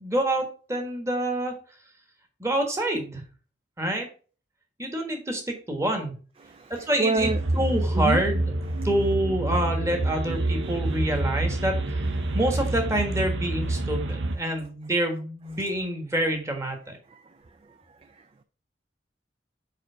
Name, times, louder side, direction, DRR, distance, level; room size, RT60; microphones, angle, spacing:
voice 1, 0.0-1.5 2.4-3.2 3.8-4.1 4.8-6.1 6.7-7.3 7.5-8.5 8.8-12.1 12.3-17.0, right 1 dB, 15° right, 1.4 m, -27 dB
voice 2, 6.4-7.7 7.9-8.2 8.8-8.9 12.2-12.4 17.1-17.2 18.1-18.4, right 2 dB, 30° right, 0.4 m, -29 dB
sound 1, 7.2-14.4, right 2 dB, 85° right, 0.8 m, -27 dB
4.9 x 4.6 x 5.6 m
head